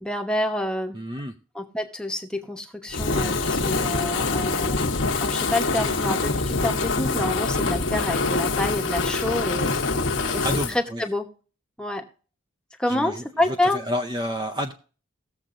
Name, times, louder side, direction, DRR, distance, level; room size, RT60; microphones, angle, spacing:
voice 1, 0.0-1.0 1.5-4.8 5.2-9.8 10.3-11.3 11.8-12.1 12.8-13.8, left 1 dB, 5° left, 4 dB, 1.0 m, -28 dB
voice 2, 0.9-1.3 10.2-11.0 12.9-14.7, equal, 20° right, 5 dB, 0.6 m, -30 dB
Fire, 2.9-10.7, left 3 dB, 60° left, 1.1 m, -25 dB
18.5 x 7.3 x 2.5 m, 0.38 s
head